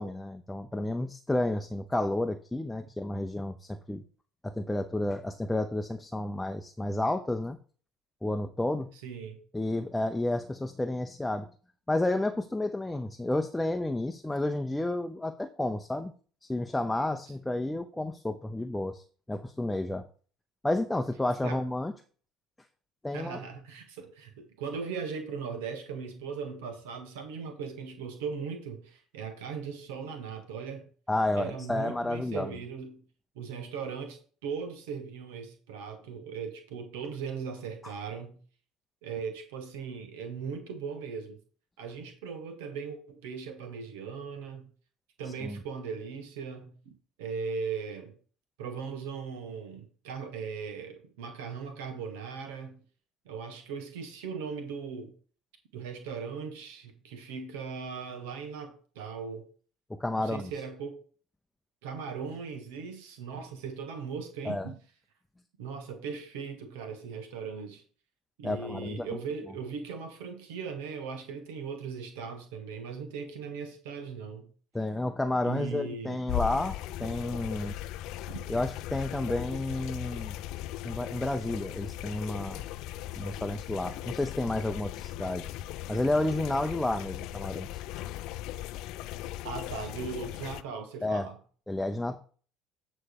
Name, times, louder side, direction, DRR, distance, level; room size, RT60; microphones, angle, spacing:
voice 1, 0.0-4.0 4.4-7.6 8.2-8.9 9.5-11.5 11.9-16.1 16.4-20.1 20.6-21.9 23.0-23.4 31.1-32.5 45.4-45.6 59.9-60.5 64.4-64.7 68.4-69.2 74.7-77.7 78.5-80.4 80.8-82.6 83.2-85.5 85.9-87.8 91.0-91.3 91.7-92.2, left 1 dB, 10° left, 0.7 m, -31 dB
voice 2, 9.0-9.4 21.4-21.6 23.1-30.9 31.3-33.0 33.4-38.4 39.0-41.4 41.8-44.7 45.2-46.9 47.2-48.1 48.6-52.8 53.3-55.1 55.7-59.4 60.2-61.0 61.8-64.7 65.6-67.8 68.4-74.5 75.4-76.2 78.3-78.5 89.4-91.4, right 5 dB, 75° right, 1.1 m, -38 dB
sound 1, 76.3-90.6, left 14 dB, 65° left, 0.5 m, -38 dB
9.6 x 3.2 x 6.6 m
hypercardioid pair, 65°, 0 cm